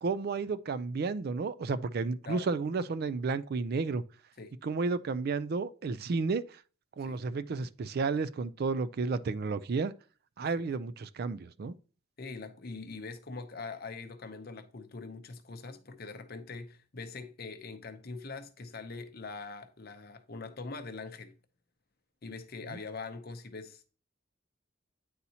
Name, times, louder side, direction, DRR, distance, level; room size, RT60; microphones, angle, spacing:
voice 1, 0.0-4.0 4.6-6.4 7.0-9.9 10.4-11.7 22.7-22.8, right 4 dB, 50° right, 0.4 m, -32 dB
voice 2, 12.2-21.3 22.2-23.9, left 4 dB, 50° left, 0.7 m, -43 dB
9.5 x 4.1 x 2.8 m
head